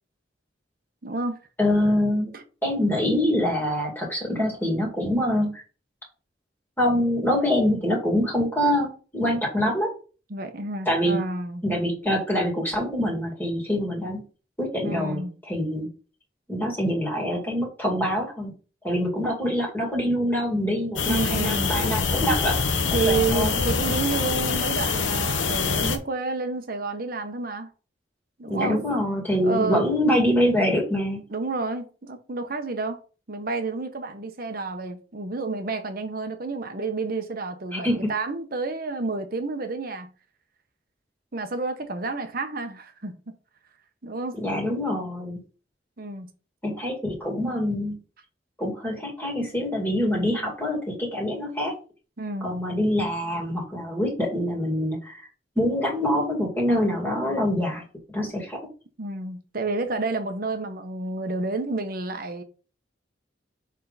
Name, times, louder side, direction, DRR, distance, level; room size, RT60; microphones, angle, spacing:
voice 1, 1.0-1.4 2.3-2.4 10.3-11.6 14.8-15.4 21.1-21.7 22.9-27.7 28.4-28.8 29.4-29.9 31.3-33.0 33.3-40.1 41.3-43.2 44.0-44.4 46.0-46.3 52.2-52.5 57.1-57.5 59.0-62.4, right 3 dB, 50° right, 1.0 m, -30 dB
voice 2, 1.6-2.3 2.6-5.6 6.8-9.9 10.9-11.2 11.6-14.2 14.6-15.2 15.5-15.9 16.5-18.5 18.8-22.6 22.9-23.6 28.5-31.2 37.7-38.1 44.4-45.4 46.6-48.0 48.6-51.7 52.4-55.3 55.6-57.8 58.1-58.6, equal, 10° left, 2.3 m, -25 dB
sound 1, 21.0-26.0, left 4 dB, 85° left, 1.0 m, -25 dB
6.8 x 3.7 x 4.1 m
head